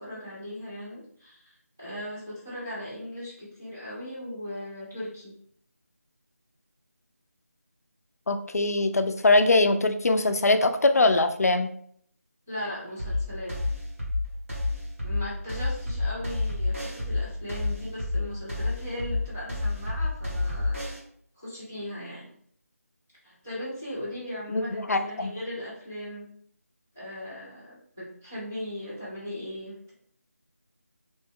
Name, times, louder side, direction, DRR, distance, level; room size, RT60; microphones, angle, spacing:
voice 1, 0.0-5.3 12.5-13.6 15.0-20.9 21.4-22.3 23.2-26.3 26.9-29.9, left 1 dB, 10° right, -11 dB, 0.5 m, -38 dB
voice 2, 8.3-11.7 24.5-25.3, left 2 dB, 70° left, 8 dB, 0.4 m, -22 dB
sound 1, 13.0-21.0, left 2 dB, 55° right, 1.2 m, -29 dB
3.0 x 2.1 x 3.5 m, 0.65 s
figure-of-eight pair, 180°, 9 cm